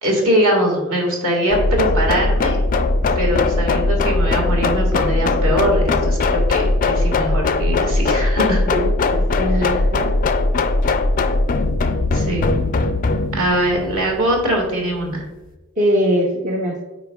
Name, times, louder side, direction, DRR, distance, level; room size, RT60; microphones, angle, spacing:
voice 1, 0.0-2.6 3.1-8.6 9.5-9.8 12.1-12.5 13.3-15.3, equal, 65° right, 0 dB, 1.9 m, -21 dB
sound 1, 1.5-15.2, left 2 dB, 40° left, 0.4 m, -19 dB
voice 2, 8.7-10.1 15.8-16.8, equal, 35° right, -1 dB, 0.7 m, -21 dB
8.9 x 4.9 x 2.3 m, 1.1 s
head